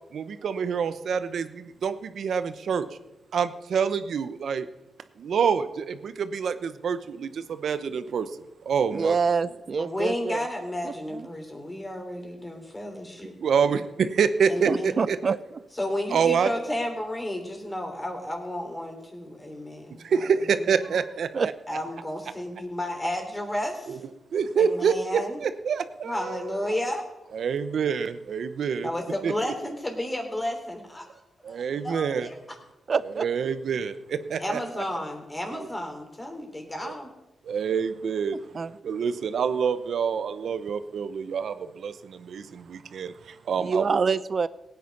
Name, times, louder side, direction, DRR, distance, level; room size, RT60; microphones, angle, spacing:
voice 1, 0.1-1.5 1.8-2.9 3.3-4.6 5.2-5.9 6.3-7.3 7.6-8.3 8.7-9.2 13.4-13.8 14.2-15.2 16.1-16.5 20.5-21.5 23.9-24.0 24.3-26.7 27.3-28.9 29.2-29.3 31.5-32.3 33.0-33.9 34.3-34.8 36.8-36.9 37.5-38.3 38.8-41.5 41.8-41.9 42.3-42.4 42.9-43.1 43.5-44.0, right 6 dB, 75° right, 11 dB, 0.9 m, -26 dB
voice 2, 8.9-10.4 10.8-11.3 14.7-15.3 21.3-21.5 32.9-33.2 38.5-38.7 43.6-44.5, right 5 dB, 50° right, 16 dB, 0.6 m, -26 dB
voice 3, 9.8-13.3 13.6-13.8 14.5-15.0 15.7-20.9 21.7-24.0 24.6-25.4 26.0-27.0 28.7-31.1 31.5-32.3 34.4-37.1, left 1 dB, 20° left, 3 dB, 3.3 m, -32 dB
17.5 x 9.3 x 5.4 m, 1.0 s
cardioid pair, 85°, 0 cm